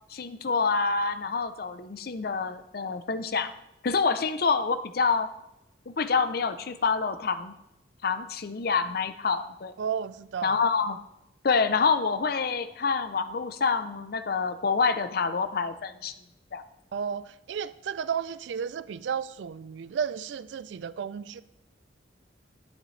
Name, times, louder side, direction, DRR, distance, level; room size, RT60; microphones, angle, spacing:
voice 1, 0.1-3.5 3.8-5.3 5.9-7.5 8.0-9.7 10.4-11.0 11.4-16.1 16.5-16.6, left 5 dB, 55° left, 0.6 m, -27 dB
voice 2, 9.8-10.6 16.9-21.4, right 7 dB, 75° right, 0.3 m, -33 dB
10.5 x 10.0 x 3.2 m
head